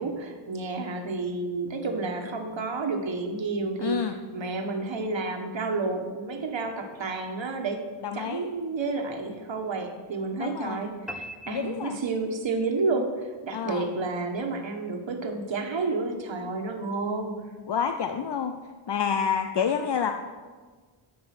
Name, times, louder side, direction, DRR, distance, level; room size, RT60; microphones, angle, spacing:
voice 1, 0.0-4.0 4.3-7.8 8.1-17.4, right 3 dB, 65° right, 4 dB, 1.5 m, -30 dB
voice 2, 3.8-4.1 8.0-8.5 10.4-10.9 11.5-12.0 13.5-13.9 17.7-18.5 18.9-20.1, left 7 dB, 60° left, 6 dB, 0.6 m, -28 dB
sound 1, 11.1-12.6, equal, ahead, 0.8 m, -41 dB
13.5 x 5.4 x 6.0 m, 1.4 s
wide cardioid pair, 115°, 48 cm